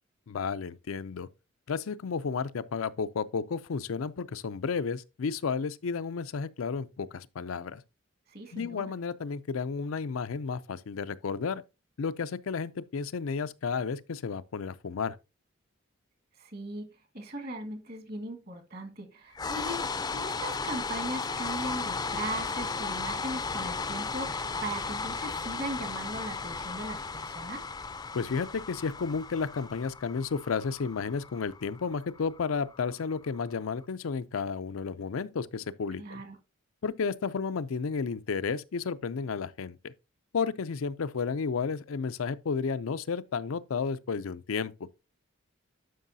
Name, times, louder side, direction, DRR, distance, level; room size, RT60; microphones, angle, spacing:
voice 1, 0.3-1.3 1.7-7.8 8.5-11.6 12.0-15.2 28.1-36.2 36.8-39.9 40.3-44.7, left 5 dB, 80° left, 0.5 m, -32 dB
voice 2, 8.3-8.8 16.4-16.9 17.1-27.6 36.0-36.4, right 1 dB, 45° right, 1.7 m, -38 dB
sound 1, 19.3-33.5, left 4 dB, 20° left, 0.4 m, -35 dB
11.5 x 5.4 x 2.7 m
head